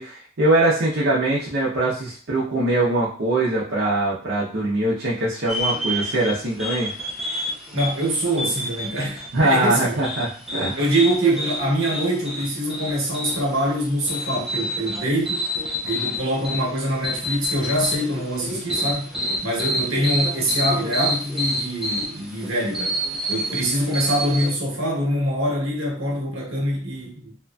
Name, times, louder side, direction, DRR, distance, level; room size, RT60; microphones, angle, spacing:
voice 1, 0.0-6.9 9.3-10.8, right 2 dB, 60° right, -6 dB, 0.6 m, -22 dB
sound 1, 5.5-24.5, equal, ahead, 0.5 m, -29 dB
voice 2, 7.7-9.9 10.8-15.5 15.8-19.1 19.4-23.0 23.3-27.3, right 1 dB, 85° right, -1 dB, 1.0 m, -24 dB
2.8 x 2.5 x 2.3 m, 0.42 s
head